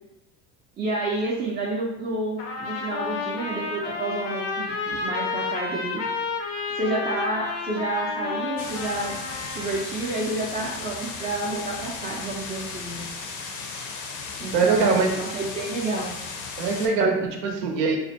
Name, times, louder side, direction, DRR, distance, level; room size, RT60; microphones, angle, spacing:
voice 1, 0.8-6.0 6.7-9.2 9.4-13.0 14.4-16.1, right 2 dB, 20° right, -6 dB, 0.3 m, -29 dB
Trumpet, 2.4-9.8, left 4 dB, 85° left, 0.7 m, -31 dB
sound 1, 8.6-16.9, left 4 dB, 40° left, 0.5 m, -36 dB
voice 2, 14.5-15.2 16.6-18.0, right 4 dB, 85° right, 3 dB, 0.6 m, -22 dB
2.4 x 2.1 x 2.6 m, 0.93 s
supercardioid pair, 85°, 48 cm